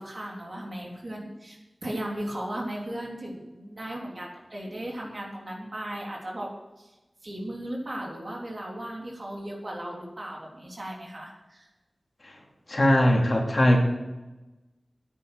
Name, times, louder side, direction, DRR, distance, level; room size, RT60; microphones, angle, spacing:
voice 1, 0.0-6.5 6.8-6.9 7.2-11.7, right 1 dB, 45° right, -2 dB, 3.7 m, -36 dB
voice 2, 12.7-13.8, left 1 dB, 45° left, 0 dB, 2.7 m, -20 dB
9.8 x 9.4 x 7.9 m, 1.1 s
wide cardioid pair, 60°, 0 cm